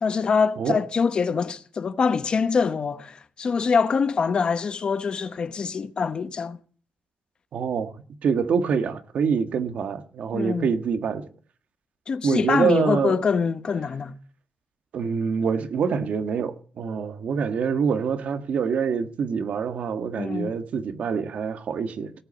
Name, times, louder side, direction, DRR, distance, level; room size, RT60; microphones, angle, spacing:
voice 1, 0.0-6.6 10.3-10.7 12.1-14.1 20.2-20.5, left 5 dB, 40° left, 1.0 m, -24 dB
voice 2, 7.5-11.3 12.2-13.2 14.9-22.1, right 6 dB, 70° right, 1.6 m, -25 dB
18.0 x 8.2 x 8.8 m
wide cardioid pair, 160°, 2 cm